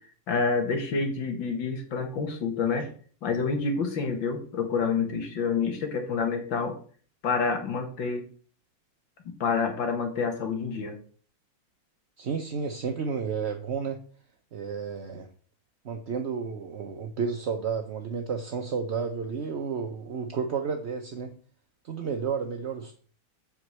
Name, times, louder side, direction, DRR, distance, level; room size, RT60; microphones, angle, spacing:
voice 1, 0.3-2.9 3.2-6.8 7.2-8.3 9.3-11.0, left 5 dB, 90° left, 4 dB, 2.4 m, -28 dB
voice 2, 12.2-14.0 14.5-15.3 15.8-21.3 21.8-22.9, right 6 dB, 50° right, 4 dB, 0.9 m, -31 dB
7.8 x 5.2 x 6.7 m, 0.43 s
omnidirectional pair, 2.0 m